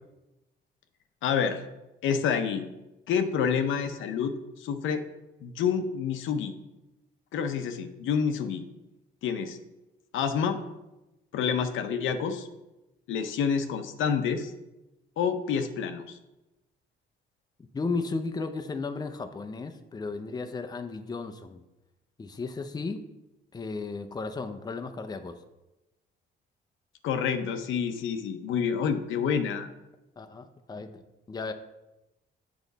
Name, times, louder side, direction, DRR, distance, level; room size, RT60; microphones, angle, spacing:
voice 1, 1.2-1.6 2.0-2.7 3.1-5.0 5.4-6.6 7.3-8.6 9.2-9.6 10.1-10.6 11.3-12.5 13.1-14.5 15.2-16.2 27.0-29.7, left 7 dB, 80° left, 7 dB, 0.7 m, -28 dB
voice 2, 17.7-21.6 22.2-23.1 23.5-25.4 30.2-31.0 31.3-31.5, left 4 dB, 20° left, 8 dB, 0.5 m, -34 dB
7.2 x 5.1 x 3.9 m, 0.98 s
cardioid pair, 90°, 20 cm